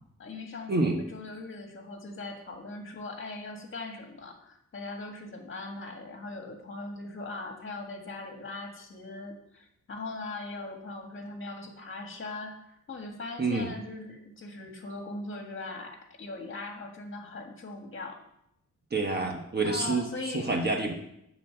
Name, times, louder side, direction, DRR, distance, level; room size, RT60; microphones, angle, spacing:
voice 1, 0.2-18.2 19.6-20.5, left 3 dB, 40° left, 3 dB, 1.7 m, -40 dB
voice 2, 13.4-13.7 18.9-20.9, right 3 dB, 35° right, 2 dB, 1.1 m, -28 dB
10.5 x 4.1 x 7.7 m, 0.78 s
wide cardioid pair, 170°, 31 cm